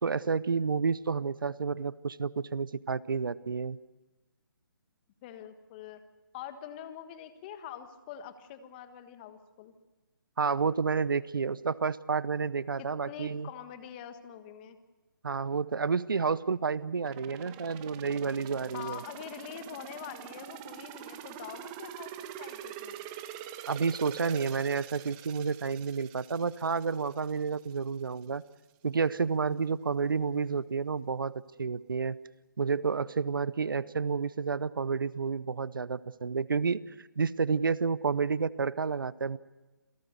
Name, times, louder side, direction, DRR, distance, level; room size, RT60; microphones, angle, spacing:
voice 1, 0.0-3.8 10.4-13.5 15.2-19.0 23.7-28.4 28.8-31.3 31.6-32.2 32.6-39.4, right 5 dB, 75° right, 20 dB, 0.7 m, -30 dB
voice 2, 5.2-6.0 6.3-9.7 12.8-14.8 18.7-23.0, left 9 dB, 25° left, 9 dB, 1.6 m, -45 dB
sound 1, 17.0-27.8 28.2-28.3, right 10 dB, 20° right, 1.2 m, -45 dB
27.5 x 17.0 x 6.7 m, 1.2 s
figure-of-eight pair, 150°, 11 cm